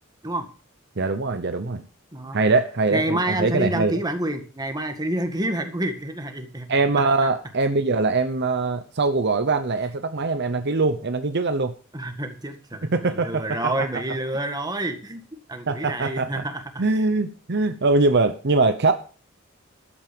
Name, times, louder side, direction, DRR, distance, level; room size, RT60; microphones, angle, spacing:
voice 1, 1.0-1.8 2.3-3.9 6.7-11.8 12.9-13.4 15.7-16.3 16.8-18.9, right 3 dB, 55° right, 9 dB, 0.8 m, -22 dB
voice 2, 2.9-7.1 11.9-17.0, right 1 dB, 20° right, 6 dB, 1.8 m, -28 dB
12.5 x 8.7 x 5.3 m, 0.39 s
head